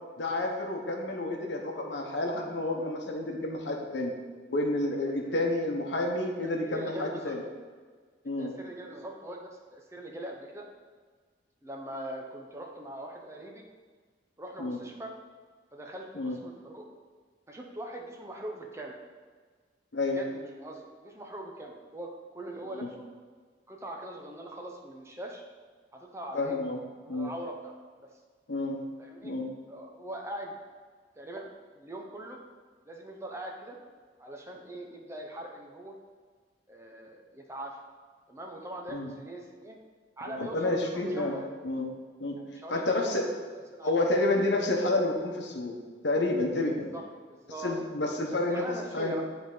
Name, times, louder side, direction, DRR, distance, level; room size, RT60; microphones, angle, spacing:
voice 1, 0.2-4.1 4.5-7.4 8.2-8.5 14.6-14.8 16.1-16.4 19.9-20.2 26.3-26.8 27.1-27.3 28.5-28.8 29.2-29.4 38.9-39.1 40.4-41.4 41.6-41.8 42.2-42.4 42.7-43.2 43.8-45.8 46.0-46.9 47.6-48.6 48.9-49.2, left 2 dB, 75° left, 1 dB, 1.0 m, -29 dB
voice 2, 6.4-7.4 8.4-10.7 11.6-13.6 14.4-15.1 15.7-16.9 17.5-19.0 20.1-23.0 23.7-25.4 25.9-26.6 27.0-27.7 28.0-28.1 29.0-29.3 29.7-30.6 31.2-31.5 31.7-32.4 32.9-33.8 34.2-35.9 36.7-37.8 38.3-39.8 40.2-41.5 42.4-43.3 43.7-43.9 46.9-47.8 48.5-49.2, right 1 dB, 15° right, 1 dB, 0.6 m, -41 dB
9.7 x 3.5 x 3.9 m, 1.5 s
head